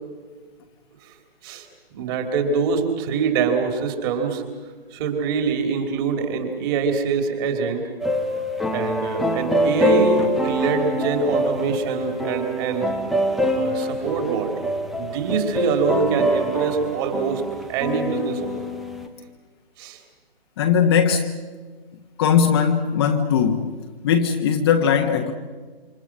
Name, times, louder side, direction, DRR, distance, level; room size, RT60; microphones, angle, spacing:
voice 1, 1.9-4.4 4.9-7.9 8.7-12.9 13.5-14.5 15.0-17.4 17.7-18.7 19.8-20.0, right 5 dB, 20° right, 5 dB, 3.3 m, -24 dB
sound 1, 8.0-19.1, equal, ahead, 0.7 m, -24 dB
voice 2, 20.6-21.4 22.2-25.3, left 7 dB, 25° left, 3 dB, 1.3 m, -19 dB
28.5 x 26.5 x 6.2 m, 1.4 s
figure-of-eight pair, 140°, 30 cm